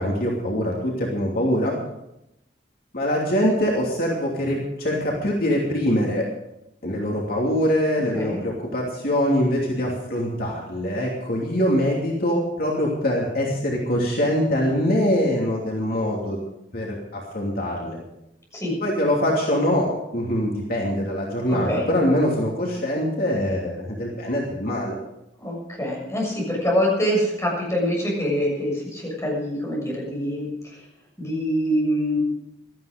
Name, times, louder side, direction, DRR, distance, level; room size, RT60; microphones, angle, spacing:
voice 1, 0.0-1.7 2.9-6.3 6.8-16.4 16.7-18.0 18.8-25.0, equal, 55° left, -2 dB, 2.9 m, -23 dB
voice 2, 21.5-21.8 25.4-30.5 31.2-32.2, equal, 15° left, -3 dB, 7.0 m, -25 dB
17.0 x 13.5 x 5.2 m, 0.85 s
head